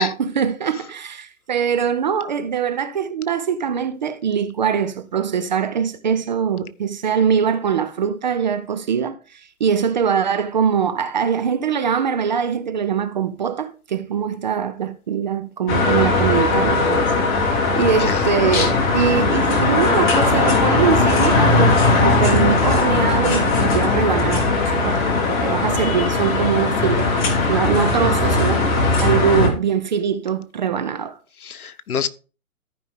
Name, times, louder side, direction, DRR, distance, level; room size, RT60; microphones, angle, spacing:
voice 1, 0.0-17.1 17.4-25.0 25.3-31.2, right 7 dB, 30° right, 0.6 m, -22 dB
sound 1, 15.7-29.5, left 3 dB, 35° left, 2.7 m, -18 dB
voice 2, 17.7-18.2 31.4-32.1, left 7 dB, 90° left, 1.0 m, -26 dB
14.0 x 5.2 x 3.6 m
hypercardioid pair, 155°, 43 cm